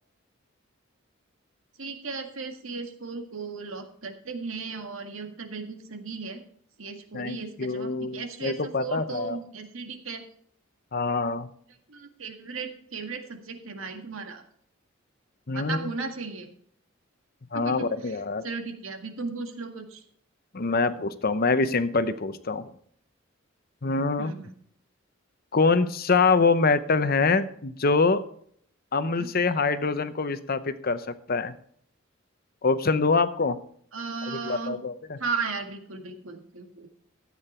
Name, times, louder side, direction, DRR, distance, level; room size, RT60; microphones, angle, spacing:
voice 1, 1.8-6.4 6.8-10.2 11.9-14.4 15.5-16.5 17.5-18.2 18.4-20.0 24.2-24.5 29.2-29.3 33.9-34.8 35.2-36.9, right 4 dB, 80° right, 4 dB, 1.9 m, -36 dB
voice 2, 7.1-9.4 10.9-11.5 15.5-15.9 17.5-18.4 20.5-22.6 23.8-24.3 25.5-28.2 28.9-31.5 32.6-33.6 34.4-35.2, left 4 dB, 45° left, 12 dB, 0.8 m, -25 dB
13.5 x 8.7 x 4.4 m, 0.63 s
head